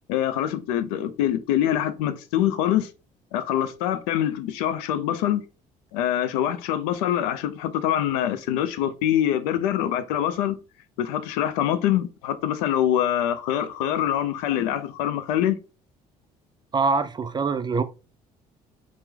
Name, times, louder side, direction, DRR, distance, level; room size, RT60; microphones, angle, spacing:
voice 1, 0.1-2.9 3.3-5.4 5.9-10.6 11.0-15.6, left 11 dB, 75° left, 0.4 m, -24 dB
voice 2, 16.7-17.8, right 4 dB, 25° right, 0.3 m, -24 dB
2.9 x 2.0 x 3.3 m
hypercardioid pair, 55°, 18 cm